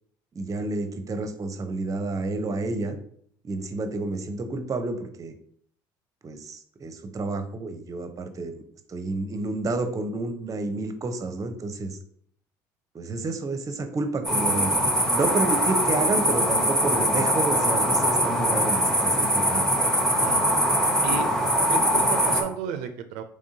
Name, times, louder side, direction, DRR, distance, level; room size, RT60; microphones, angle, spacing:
voice 1, 0.4-3.0 3.4-5.3 6.2-8.6 8.9-12.0 12.9-14.7 15.1-19.6, right 3 dB, 30° right, 8 dB, 0.6 m, -30 dB
sound 1, 14.2-22.4, equal, 5° left, 0.8 m, -22 dB
voice 2, 20.1-20.6 21.0-21.3 21.7-23.2, right 8 dB, 75° right, 7 dB, 0.4 m, -34 dB
3.6 x 3.1 x 2.7 m, 0.62 s
hypercardioid pair, 70°, 11 cm